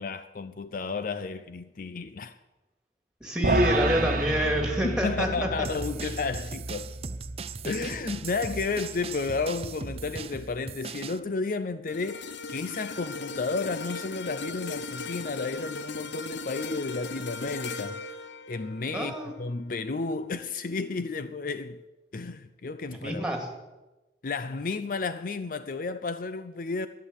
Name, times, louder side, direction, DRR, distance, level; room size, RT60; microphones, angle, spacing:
voice 1, 0.0-2.4 4.8-6.9 7.6-18.0 18.5-21.8 22.1-23.3 24.2-26.9, left 4 dB, 50° left, 0.5 m, -32 dB
voice 2, 3.2-5.3 5.6-5.7 18.9-19.3 22.9-23.5, equal, 5° right, 2.5 m, -27 dB
sound 1, 3.4-9.8, right 2 dB, 55° right, 1.2 m, -32 dB
sound 2, 5.6-11.2, right 5 dB, 35° right, 0.5 m, -39 dB
sound 3, 11.9-20.2 20.7-20.9, left 3 dB, 85° left, 0.9 m, -38 dB
11.5 x 11.0 x 8.2 m
head